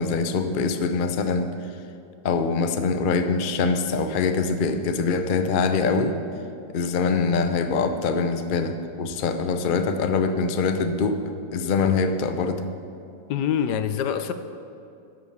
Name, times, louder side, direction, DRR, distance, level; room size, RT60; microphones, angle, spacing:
voice 1, 0.0-1.5 2.2-6.2 6.7-11.2 11.5-12.6, left 4 dB, 55° left, 8 dB, 0.6 m, -24 dB
voice 2, 13.3-14.3, left 8 dB, 80° left, 10 dB, 1.2 m, -25 dB
13.0 x 6.1 x 8.1 m, 2.6 s
omnidirectional pair, 1.8 m